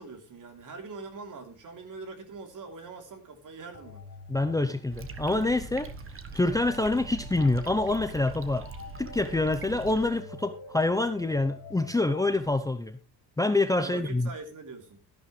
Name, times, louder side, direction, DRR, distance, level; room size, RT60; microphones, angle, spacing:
voice 1, 0.0-4.0 13.8-15.0, right 4 dB, 55° right, 3.3 m, -43 dB
sound 1, 3.7-12.5, left 3 dB, 40° left, 4.1 m, -47 dB
voice 2, 4.3-5.9 6.3-8.7 9.0-13.0 13.4-14.3, left 2 dB, 10° left, 0.7 m, -26 dB
sound 2, 4.9-10.1, right 4 dB, 35° right, 1.3 m, -42 dB
13.0 x 11.0 x 3.2 m
cardioid pair, 130°, 38 cm